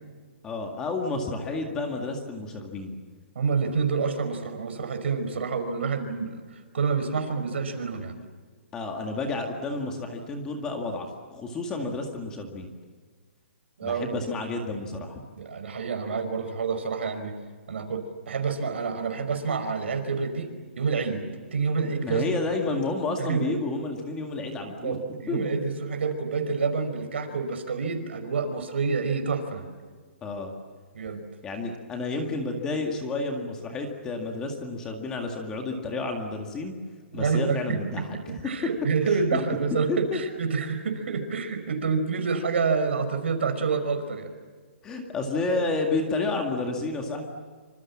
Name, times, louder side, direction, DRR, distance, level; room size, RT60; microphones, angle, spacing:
voice 1, 0.4-3.0 8.7-12.7 13.8-15.2 22.0-25.0 25.3-25.5 30.2-30.5 31.4-36.7 37.1-38.2 39.3-39.4 39.9-40.2 44.8-47.2, left 3 dB, 10° left, 2 dB, 2.0 m, -30 dB
voice 2, 3.4-8.2 13.8-14.2 15.4-17.4 17.7-21.2 21.5-22.2 23.2-23.5 24.5-29.7 30.9-31.2 37.1-44.3 45.5-45.6, right 5 dB, 65° right, 8 dB, 5.4 m, -28 dB
27.0 x 26.5 x 7.4 m, 1.5 s
hypercardioid pair, 175°, 7 cm